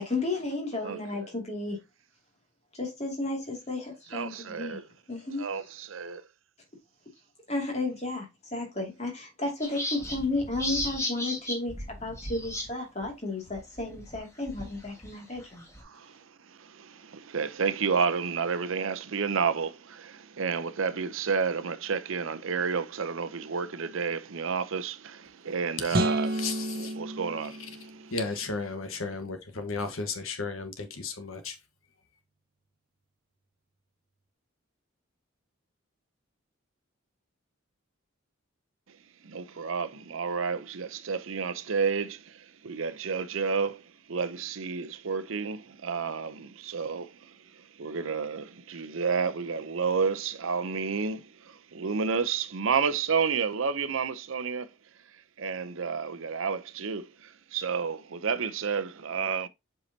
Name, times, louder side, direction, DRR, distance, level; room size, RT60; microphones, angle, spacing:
voice 1, 0.0-1.8 2.7-4.8 5.1-5.5 7.5-11.7 12.0-15.6, left 2 dB, 30° left, 2.5 m, -33 dB
voice 2, 0.8-1.3 4.1-4.9 5.4-6.2 15.8-26.5 26.7-28.1 39.2-54.7 55.4-59.5, right 5 dB, 75° right, 0.7 m, -31 dB
sound 1, 9.6-12.7 13.0-13.1 13.5-15.8, left 1 dB, 15° left, 1.7 m, -35 dB
sound 2, 25.9-28.3, right 1 dB, 45° right, 0.9 m, -31 dB
voice 3, 26.3-26.9 28.1-31.6, left 4 dB, 85° left, 1.4 m, -34 dB
7.9 x 4.7 x 2.8 m
head